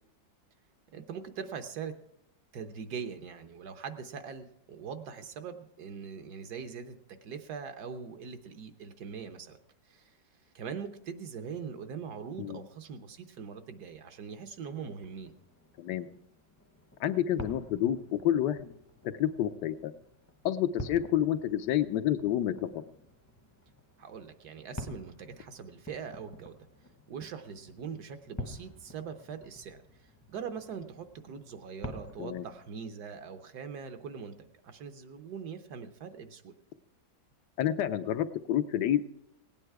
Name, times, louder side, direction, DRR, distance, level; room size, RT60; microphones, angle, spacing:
voice 1, 0.9-1.9 2.5-9.6 9.9-10.1 10.5-15.3 24.0-26.5 27.1-29.8 30.3-34.3 34.6-36.5, right 6 dB, 65° right, 8 dB, 1.4 m, -42 dB
sound 1, 14.6-32.6, left 1 dB, 15° left, 0.7 m, -48 dB
voice 2, 17.0-18.7 19.2-19.9 20.4-22.7 32.2-32.4 37.6-39.1, left 11 dB, 75° left, 12 dB, 1.3 m, -29 dB
17.5 x 9.1 x 4.7 m, 0.78 s
omnidirectional pair, 1.9 m